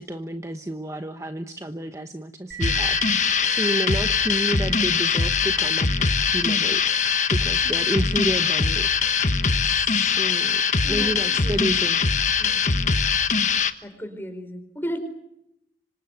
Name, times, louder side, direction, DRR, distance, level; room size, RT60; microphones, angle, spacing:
voice 1, 0.0-5.9 6.3-9.1 9.6-10.6 10.9-12.0, right 1 dB, 15° right, 6 dB, 1.1 m, -30 dB
sound 1, 2.5-11.7, right 10 dB, 50° right, 7.1 m, -40 dB
sound 2, 2.6-13.7, left 5 dB, 45° left, 1.3 m, -22 dB
voice 2, 10.8-11.8 12.4-12.7 13.8-15.0, equal, 10° left, 9 dB, 4.6 m, -35 dB
26.0 x 25.5 x 8.0 m, 0.82 s
head